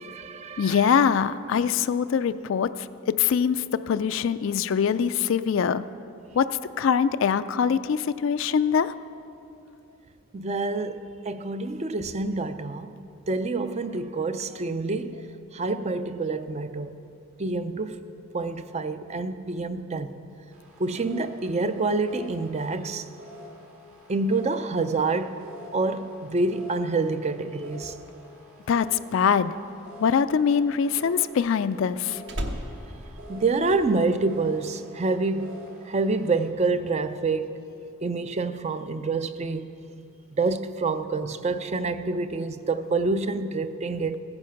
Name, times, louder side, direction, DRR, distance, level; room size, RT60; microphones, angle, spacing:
voice 1, 0.0-0.9 10.3-12.9 13.3-15.2 15.5-16.9 17.4-18.0 18.3-20.1 20.8-23.0 24.1-25.4 25.7-27.9 33.3-35.6 35.9-37.6 38.0-39.7 40.4-44.2, right 3 dB, 30° right, 0.4 m, -27 dB
voice 2, 0.6-2.7 3.0-5.8 6.4-8.9 28.7-29.5 30.0-32.2, left 7 dB, 60° left, 0.3 m, -23 dB
sound 1, 20.5-36.5, equal, 70° right, 2.5 m, -47 dB
Slam, 30.0-34.1 34.4-34.8, equal, 55° right, 1.1 m, -37 dB
15.5 x 9.7 x 5.8 m
head